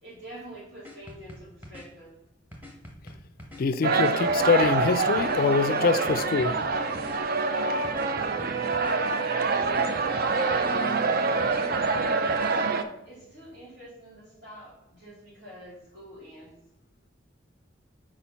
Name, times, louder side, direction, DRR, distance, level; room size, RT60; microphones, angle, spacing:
voice 1, 0.0-2.1 9.2-12.0 13.0-16.6, right 1 dB, 70° right, -4 dB, 2.7 m, -46 dB
sound 1, 0.8-1.9 2.5-3.6 4.3-5.4 6.1-7.2 7.8-9.0 9.6-10.7 11.4-12.5, left 1 dB, 10° right, 1.1 m, -44 dB
voice 2, 3.6-6.6, left 5 dB, 50° left, 13 dB, 0.3 m, -24 dB
sound 2, 3.8-12.8, right 4 dB, 50° right, 0.5 m, -25 dB
4.9 x 4.3 x 5.5 m, 0.83 s
head